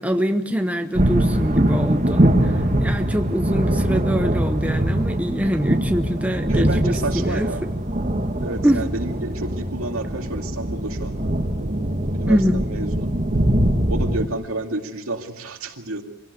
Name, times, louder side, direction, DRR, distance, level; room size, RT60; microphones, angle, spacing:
voice 1, 0.0-7.5 8.6-8.8 12.3-12.6, equal, 5° right, 6 dB, 0.8 m, -24 dB
sound 1, 0.9-14.3, right 1 dB, 35° right, 1.6 m, -22 dB
voice 2, 6.5-7.6 8.4-13.1 13.9-16.0, right 2 dB, 80° right, 4 dB, 2.4 m, -30 dB
25.0 x 17.0 x 8.2 m, 0.94 s
head